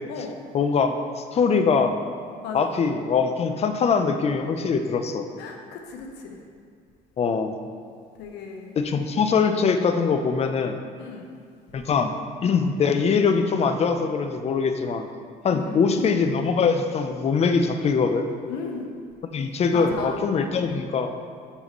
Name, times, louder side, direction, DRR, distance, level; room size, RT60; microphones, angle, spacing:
voice 1, 0.5-2.0 2.5-5.3 7.2-7.6 8.8-10.8 11.7-12.1 12.4-15.0 15.4-18.3 19.3-21.1, left 5 dB, 40° left, 7 dB, 0.5 m, -22 dB
voice 2, 2.4-2.8 5.4-6.4 8.2-8.7 11.0-11.4 15.5-16.1 18.5-18.9 19.7-20.2, left 5 dB, 85° left, 2 dB, 0.8 m, -35 dB
9.6 x 4.0 x 3.0 m, 2.1 s
cardioid pair, 110°, 17 cm